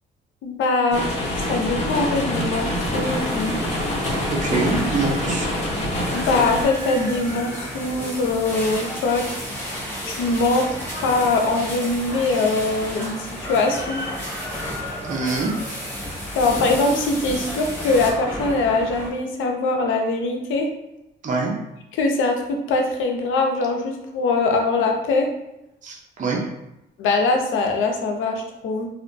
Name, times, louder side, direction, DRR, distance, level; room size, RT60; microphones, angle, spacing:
voice 1, 0.4-3.6 6.1-9.3 10.0-14.0 16.4-20.7 21.9-25.3 27.0-28.9, left 3 dB, 80° left, 3 dB, 0.5 m, -22 dB
sound 1, 0.9-6.7, left 1 dB, 35° left, 0.8 m, -25 dB
sound 2, 2.5-18.1, equal, 10° left, 1.1 m, -35 dB
sound 3, 2.9-19.1, equal, 10° right, 1.2 m, -35 dB
voice 2, 4.4-5.5 15.0-15.5 21.2-21.5 25.8-26.4, right 3 dB, 40° right, -2 dB, 0.6 m, -24 dB
2.8 x 2.1 x 2.5 m, 0.88 s
cardioid pair, 90°, 20 cm